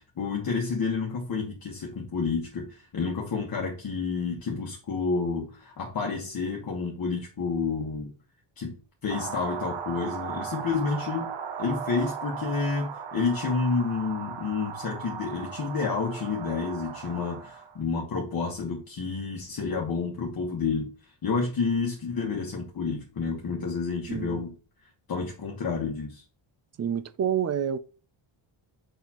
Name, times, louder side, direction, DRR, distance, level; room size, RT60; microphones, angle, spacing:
voice 1, 0.0-8.1 8.6-8.7 9.0-11.3 11.6-20.9 21.2-24.5 25.1-26.2, left 4 dB, 45° left, 1.3 m, -30 dB
sound 1, 9.1-17.8, right 7 dB, 60° right, 0.9 m, -37 dB
voice 2, 24.1-24.4 26.8-27.8, right 8 dB, 35° right, 0.4 m, -28 dB
6.6 x 5.6 x 2.9 m
wide cardioid pair, 135°, 49 cm